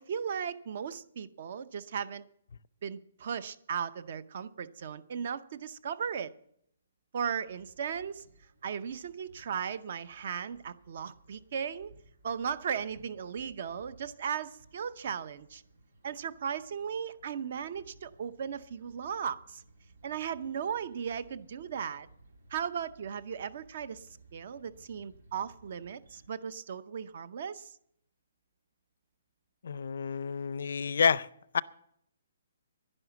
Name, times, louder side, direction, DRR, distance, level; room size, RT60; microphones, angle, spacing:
voice 1, 0.0-2.3 2.8-6.3 7.1-8.3 8.6-11.9 12.2-15.6 16.0-19.6 20.0-22.1 22.5-24.1 24.3-27.7, right 7 dB, 40° right, 0.7 m, -36 dB
sound 1, 7.5-26.3, right 2 dB, 85° right, 3.9 m, -60 dB
voice 2, 29.6-31.3 31.5-31.6, left 6 dB, 60° left, 0.5 m, -28 dB
11.0 x 11.0 x 7.1 m
hypercardioid pair, 175°, 0 cm